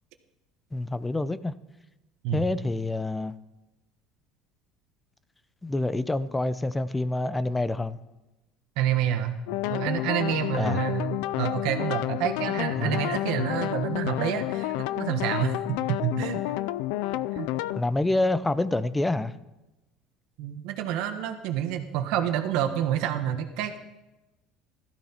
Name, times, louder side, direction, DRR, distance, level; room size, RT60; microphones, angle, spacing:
voice 1, 0.7-1.5 2.3-3.3 5.6-8.0 10.6-10.8 12.8-13.0 17.7-19.3, left 2 dB, 10° left, 15 dB, 0.6 m, -27 dB
voice 2, 8.8-9.3 9.7-16.4 17.3-17.5 20.4-23.8, right 10 dB, 70° right, 6 dB, 1.2 m, -28 dB
sound 1, 9.5-17.8, left 16 dB, 80° left, 0.4 m, -30 dB
16.5 x 13.5 x 4.4 m, 1.0 s
supercardioid pair, 120°, 0 cm